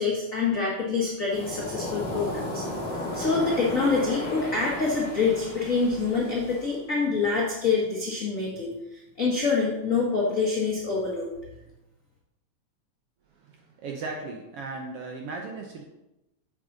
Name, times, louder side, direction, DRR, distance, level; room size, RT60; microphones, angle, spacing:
voice 1, 0.0-2.6 3.1-11.3, left 4 dB, 90° left, -3 dB, 0.7 m, -26 dB
Waves surf, 1.3-6.8, left 1 dB, 35° left, 0.9 m, -35 dB
voice 2, 13.3-15.8, right 3 dB, 75° right, 1 dB, 1.4 m, -37 dB
8.4 x 6.4 x 3.8 m, 0.95 s
omnidirectional pair, 3.4 m